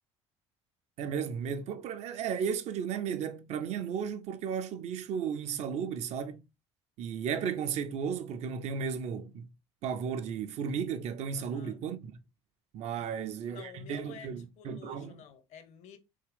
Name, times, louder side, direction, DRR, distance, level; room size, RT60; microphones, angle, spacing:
voice 1, 1.0-6.4 7.0-9.5 9.8-12.1 12.7-15.2, right 7 dB, 50° right, 0.5 m, -34 dB
voice 2, 11.3-11.8 13.0-13.2 13.4-16.0, left 8 dB, 55° left, 0.7 m, -51 dB
3.6 x 2.9 x 3.2 m
hypercardioid pair, 60°, 15 cm